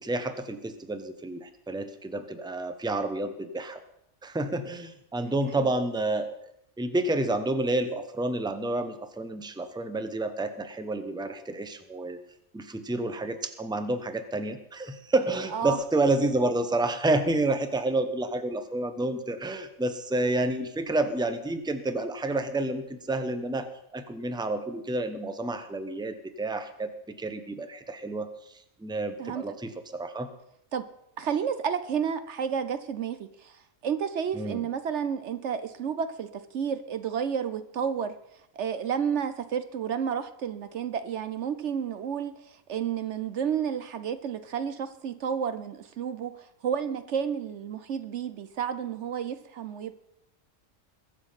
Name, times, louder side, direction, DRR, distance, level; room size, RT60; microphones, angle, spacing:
voice 1, 0.0-3.8 4.2-6.3 6.8-12.2 12.5-26.9 27.2-28.3 28.8-30.3 34.3-34.6, right 2 dB, 5° right, 9 dB, 0.9 m, -29 dB
voice 2, 29.2-29.6 30.7-30.9 31.2-38.1 38.5-50.0, right 7 dB, 65° right, 12 dB, 1.0 m, -31 dB
22.0 x 7.3 x 5.7 m, 0.77 s
omnidirectional pair, 1.3 m